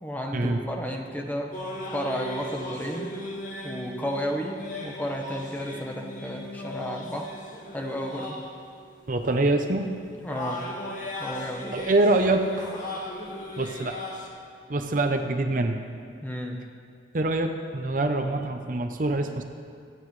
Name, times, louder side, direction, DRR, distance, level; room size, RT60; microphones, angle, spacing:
voice 1, 0.0-1.5 1.9-3.2 3.6-7.3 7.7-8.4 10.2-10.7 11.2-11.7 16.2-16.6, equal, 10° left, 1 dB, 1.1 m, -32 dB
sound 1, 1.5-14.3, left 1 dB, 45° left, 1.7 m, -38 dB
voice 2, 9.1-9.9 11.7-12.7 13.6-14.0 14.7-15.8 17.1-19.4, right 2 dB, 45° right, 5 dB, 0.7 m, -25 dB
24.5 x 9.4 x 3.2 m, 2.3 s
head